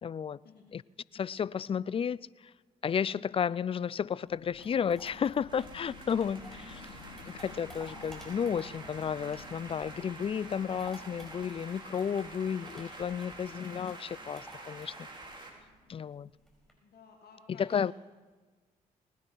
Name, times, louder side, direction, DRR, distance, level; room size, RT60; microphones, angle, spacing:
voice 1, 0.0-0.4 0.7-0.8 1.1-2.3 2.8-6.4 7.3-14.9 15.9-16.3 17.6-17.9, left 7 dB, 30° left, 0.4 m, -32 dB
sound 1, 4.2-16.5, left 4 dB, 80° left, 2.0 m, -54 dB
sound 2, 4.3-10.1 10.4-16.7, equal, ahead, 4.9 m, -53 dB
sound 3, 5.5-15.5, right 2 dB, 25° right, 3.3 m, -48 dB
voice 2, 6.5-6.8 16.7-17.9, left 5 dB, 60° left, 1.8 m, -57 dB
19.5 x 10.5 x 4.6 m
hypercardioid pair, 45°, 18 cm